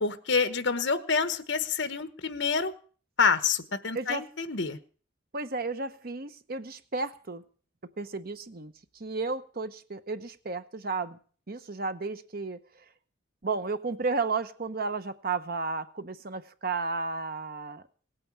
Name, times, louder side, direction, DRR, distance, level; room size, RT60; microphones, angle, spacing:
voice 1, 0.0-2.7 3.2-4.8, left 5 dB, 60° left, 11 dB, 1.1 m, -27 dB
voice 2, 5.3-7.4 8.0-8.7 9.0-11.2 11.5-12.6 13.4-17.8, right 4 dB, 50° right, 11 dB, 0.9 m, -33 dB
18.0 x 8.9 x 7.3 m, 0.42 s
head